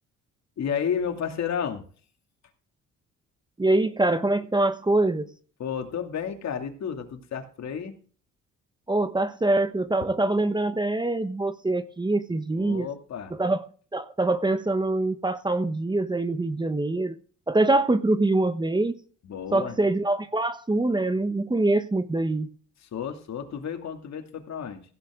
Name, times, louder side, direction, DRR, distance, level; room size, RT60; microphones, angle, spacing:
voice 1, 0.6-1.8 5.6-8.0 12.6-13.3 19.2-19.8 22.8-24.8, left 7 dB, 60° left, 5 dB, 2.6 m, -32 dB
voice 2, 3.6-5.3 8.9-12.9 13.3-13.7 13.9-17.2 17.5-18.9 19.5-22.5, right 2 dB, 15° right, 11 dB, 1.0 m, -24 dB
16.0 x 8.6 x 3.7 m, 0.42 s
cardioid pair, 90°, 30 cm